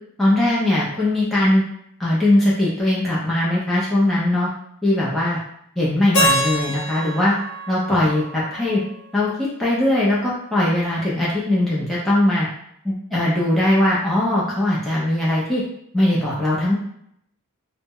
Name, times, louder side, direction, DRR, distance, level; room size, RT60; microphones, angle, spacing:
voice 1, 0.2-1.6 2.0-4.5 4.8-5.4 5.8-7.3 7.7-8.8 9.1-12.5 12.8-15.6 15.9-16.8, left 1 dB, ahead, -8 dB, 0.4 m, -20 dB
Keyboard (musical), 6.1-9.1, equal, 80° left, 0.8 m, -25 dB
2.0 x 2.0 x 3.5 m, 0.74 s
head